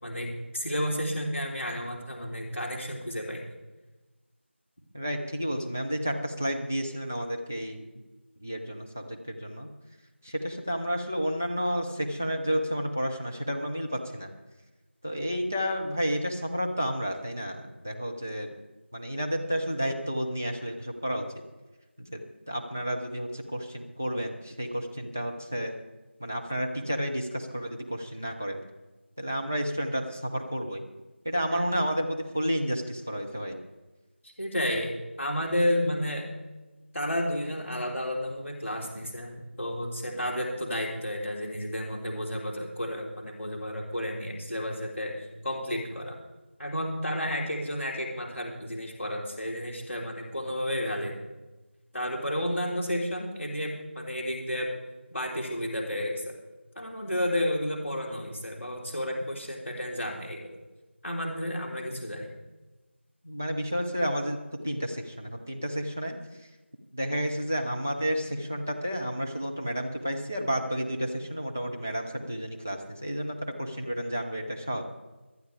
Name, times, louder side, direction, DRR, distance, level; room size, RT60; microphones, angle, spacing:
voice 1, 0.0-3.4 31.5-31.7 34.2-36.3 36.9-46.2 46.6-51.2 51.9-54.7 55.1-56.3 56.7-60.4 61.0-62.3, left 1 dB, 10° left, -12 dB, 2.4 m, -31 dB
voice 2, 4.9-7.8 8.4-9.7 10.2-14.3 15.0-18.5 18.9-21.3 22.1-25.7 26.2-28.6 29.2-30.8 31.2-33.6 63.2-64.4 64.6-66.2 66.9-74.8, equal, 10° right, 1 dB, 0.5 m, -31 dB
26.0 x 9.4 x 3.4 m, 1.1 s
figure-of-eight pair, 175°, 7 cm